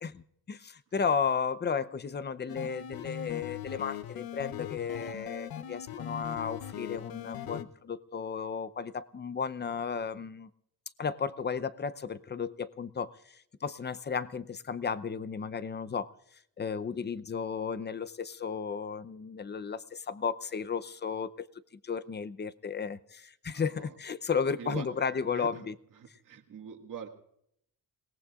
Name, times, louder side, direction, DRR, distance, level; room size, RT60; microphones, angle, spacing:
voice 1, 0.0-10.5 11.0-16.1 16.6-21.5 21.8-25.7, left 6 dB, 30° left, 0.7 m, -34 dB
sound 1, 2.5-7.6, left 10 dB, 85° left, 0.9 m, -40 dB
voice 2, 23.5-23.9 24.6-24.9 25.3-25.7 25.9-27.1, right 7 dB, 65° right, 2.0 m, -43 dB
29.5 x 18.0 x 2.5 m
cardioid pair, 95°, 35 cm